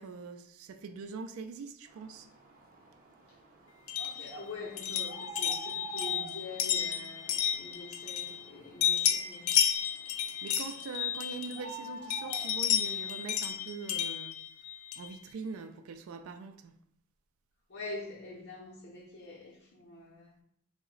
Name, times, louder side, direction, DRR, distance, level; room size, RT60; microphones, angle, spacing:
voice 1, 0.0-2.3 10.4-14.4 15.0-16.7, right 4 dB, 75° right, 0.3 m, -42 dB
sound 1, 1.9-13.6, right 3 dB, 45° right, 0.6 m, -49 dB
sound 2, 3.9-8.5 8.8-11.7 12.1-15.2, left 9 dB, 85° left, 0.4 m, -32 dB
voice 2, 4.0-9.6 17.7-20.3, left 2 dB, 55° left, 0.7 m, -45 dB
3.8 x 2.1 x 3.7 m
head